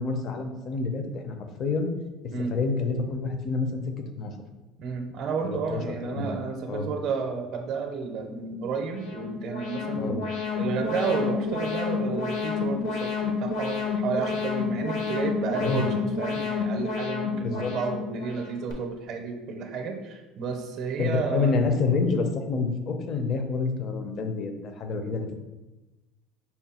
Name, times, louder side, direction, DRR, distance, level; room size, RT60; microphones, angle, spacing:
voice 1, 0.0-1.9 2.5-3.8 4.2-4.4 5.4-6.3 6.7-6.9 10.0-10.2 15.6-15.9 17.4-17.7 21.0-25.3, left 4 dB, 40° left, 6 dB, 0.6 m, -28 dB
voice 2, 4.8-10.2 10.6-21.5, right 5 dB, 45° right, 3 dB, 0.5 m, -31 dB
Alarm, 8.8-18.7, left 5 dB, 70° left, 0.9 m, -30 dB
5.6 x 2.2 x 4.2 m, 1.1 s
cardioid pair, 140°, 0 cm